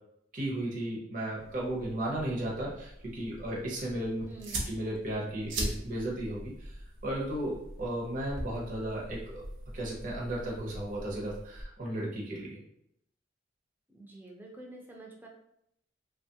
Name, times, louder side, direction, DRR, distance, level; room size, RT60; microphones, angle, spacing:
voice 1, 0.3-4.2 4.7-9.4 9.7-12.6, right 1 dB, 45° right, -4 dB, 0.7 m, -35 dB
sound 1, 1.4-11.6, right 1 dB, 80° right, 0.7 m, -42 dB
voice 2, 4.3-4.7 13.9-15.3, right 2 dB, 10° right, -1 dB, 0.5 m, -47 dB
3.1 x 2.3 x 2.7 m, 0.75 s
head